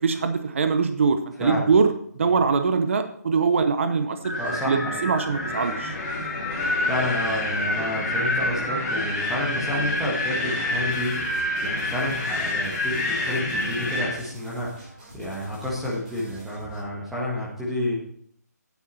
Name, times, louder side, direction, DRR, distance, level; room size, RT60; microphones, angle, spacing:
voice 1, 0.0-4.3 4.7-5.9, right 5 dB, 45° right, 8 dB, 0.7 m, -22 dB
Wind, 4.2-14.2, left 1 dB, 30° left, 3.0 m, -27 dB
voice 2, 4.4-5.1 6.8-18.0, left 1 dB, ahead, -7 dB, 1.6 m, -30 dB
sound 1, 10.9-16.8, right 1 dB, 25° right, 4.6 m, -47 dB
9.4 x 7.8 x 4.3 m, 0.64 s
figure-of-eight pair, 150°, 9 cm